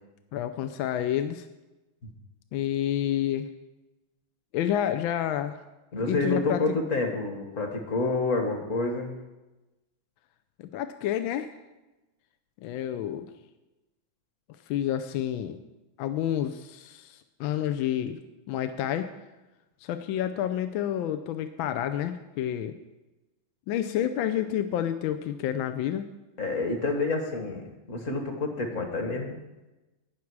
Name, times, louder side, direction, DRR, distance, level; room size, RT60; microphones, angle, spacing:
voice 1, 0.3-1.5 2.5-3.5 4.5-5.5 6.0-6.6 10.6-11.5 12.6-13.3 14.7-15.6 16.0-18.2 18.5-19.1 19.8-22.8 23.7-26.1, left 11 dB, 80° left, 9 dB, 1.4 m, -29 dB
voice 2, 5.9-9.2 26.4-29.3, left 3 dB, 40° left, 4 dB, 1.6 m, -28 dB
18.0 x 6.1 x 4.7 m, 1.0 s
omnidirectional pair, 2.2 m